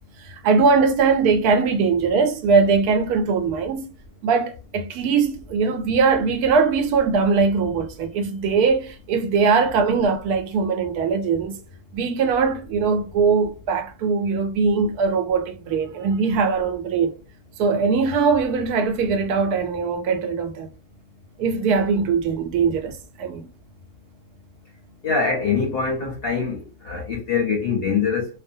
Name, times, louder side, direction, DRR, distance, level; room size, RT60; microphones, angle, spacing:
voice 1, 0.2-3.8 4.2-11.6 11.9-17.1 17.6-20.7 21.4-23.5, right 5 dB, 90° right, 1.1 m, -21 dB
voice 2, 25.0-28.3, left 5 dB, 55° left, 0.7 m, -23 dB
2.6 x 2.1 x 2.6 m
omnidirectional pair, 1.6 m